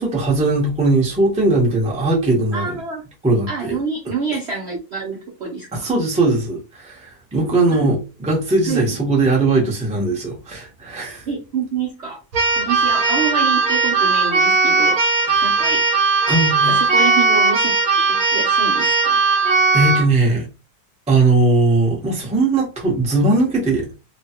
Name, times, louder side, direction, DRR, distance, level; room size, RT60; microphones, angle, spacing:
voice 1, 0.0-2.8 3.2-3.8 5.7-11.3 15.3-15.5 16.3-16.7 19.4-20.5 21.1-23.9, right 2 dB, 5° right, 0.5 m, -19 dB
voice 2, 2.5-3.0 3.5-5.9 7.7-7.9 8.6-8.8 11.3-12.2 12.6-15.0 15.4-15.9 16.7-19.2, right 5 dB, 80° right, 0.5 m, -27 dB
Keyboard (musical), 12.3-20.1, right 4 dB, 65° right, 1.0 m, -17 dB
3.0 x 2.2 x 2.8 m
omnidirectional pair, 1.9 m